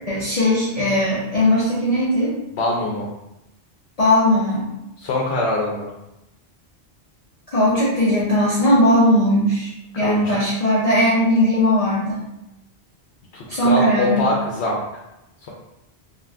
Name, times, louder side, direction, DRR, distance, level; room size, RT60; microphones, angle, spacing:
voice 1, 0.0-2.3 4.0-4.7 7.5-12.2 13.5-14.3, left 1 dB, 45° left, -9 dB, 0.6 m, -18 dB
voice 2, 2.5-3.1 5.0-5.9 9.9-10.3 13.3-15.0, left 2 dB, 80° left, -3 dB, 0.8 m, -23 dB
2.3 x 2.3 x 3.3 m, 0.91 s
omnidirectional pair, 1.1 m